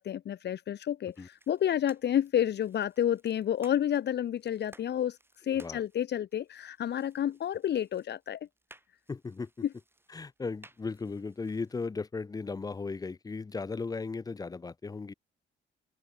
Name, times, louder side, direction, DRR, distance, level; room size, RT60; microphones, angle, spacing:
voice 1, 0.0-8.5 9.6-9.7, left 10 dB, 60° left, 1.2 m, -30 dB
sound 1, 1.1-11.9, right 2 dB, 10° right, 3.5 m, -61 dB
voice 2, 5.5-5.8 9.1-9.5 10.1-15.1, left 4 dB, 20° left, 0.5 m, -36 dB
open air
cardioid pair, 90°, 20 cm